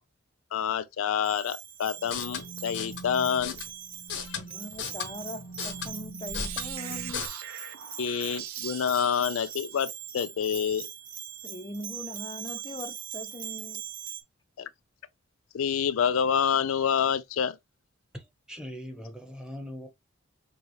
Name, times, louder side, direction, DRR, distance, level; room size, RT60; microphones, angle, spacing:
voice 1, 0.5-3.6 4.2-4.4 8.0-10.9 14.6-14.7 15.5-17.6, left 7 dB, 75° left, 0.4 m, -27 dB
Bell, 1.2-14.2, right 9 dB, 40° right, 1.2 m, -41 dB
sound 1, 2.0-7.3, left 4 dB, 60° left, 1.0 m, -37 dB
voice 2, 4.4-7.3 11.4-13.8, left 1 dB, 25° left, 0.6 m, -41 dB
sound 2, 6.4-10.1, right 11 dB, 90° right, 0.6 m, -42 dB
voice 3, 18.1-19.9, equal, 5° right, 1.1 m, -41 dB
6.7 x 2.4 x 3.2 m
head